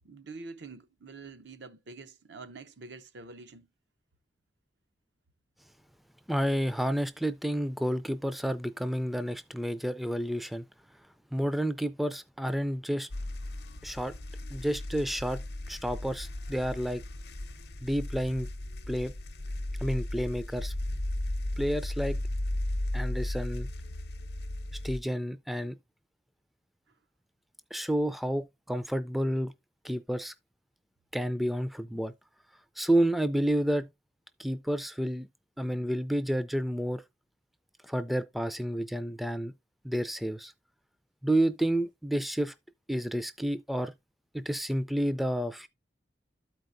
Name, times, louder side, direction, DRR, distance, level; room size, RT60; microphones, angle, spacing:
voice 1, 0.0-3.7, right 3 dB, 85° right, 0.7 m, -46 dB
voice 2, 6.3-10.6 11.3-13.1 13.8-14.1 14.5-15.4 15.7-17.0 17.8-18.5 18.9-19.1 19.8-20.7 21.6-22.2 22.9-23.7 24.8-25.8 27.7-29.5 29.8-30.3 31.1-32.1 32.8-33.9 34.4-35.3 35.6-37.0 37.8-39.5 39.8-40.5 41.2-42.5 42.9-43.9 44.3-45.7, equal, ahead, 0.3 m, -30 dB
sound 1, 13.1-25.0, left 1 dB, 65° left, 0.7 m, -35 dB
12.5 x 4.6 x 2.5 m
head